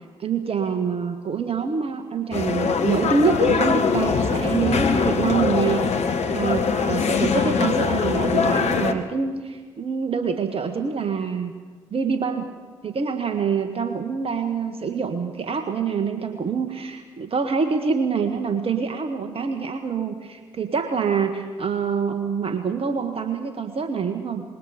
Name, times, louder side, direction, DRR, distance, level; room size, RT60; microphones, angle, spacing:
voice 1, 0.2-11.5 11.9-12.5 12.8-24.4, right 5 dB, 45° right, 6 dB, 1.8 m, -25 dB
sound 1, 2.3-8.9, left 5 dB, 50° left, 1.7 m, -22 dB
26.0 x 21.5 x 5.3 m, 1.5 s
hypercardioid pair, 40°, 14 cm